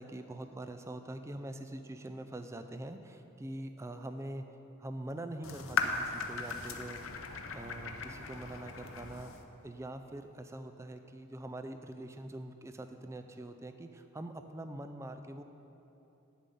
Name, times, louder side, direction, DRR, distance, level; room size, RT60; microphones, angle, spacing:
voice 1, 0.0-4.4 4.8-7.2 7.5-9.3 9.6-15.4, right 1 dB, 15° right, 8 dB, 0.3 m, -44 dB
sound 1, 5.4-9.4, left 4 dB, 75° left, 0.7 m, -37 dB
9.1 x 7.2 x 5.4 m, 3.0 s
head